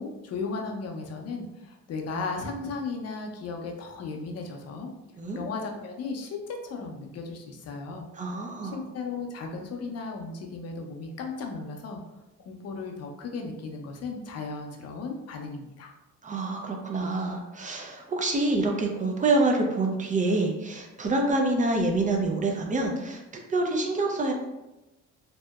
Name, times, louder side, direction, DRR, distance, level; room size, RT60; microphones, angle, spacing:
voice 1, 0.0-4.9 5.4-8.1 8.7-12.0 12.4-15.9, left 4 dB, 55° left, 2 dB, 0.5 m, -35 dB
voice 2, 8.2-8.8 16.2-23.2 23.5-24.3, right 2 dB, 25° right, 1 dB, 0.4 m, -26 dB
2.7 x 2.0 x 2.2 m, 1.0 s
cardioid pair, 90°, 30 cm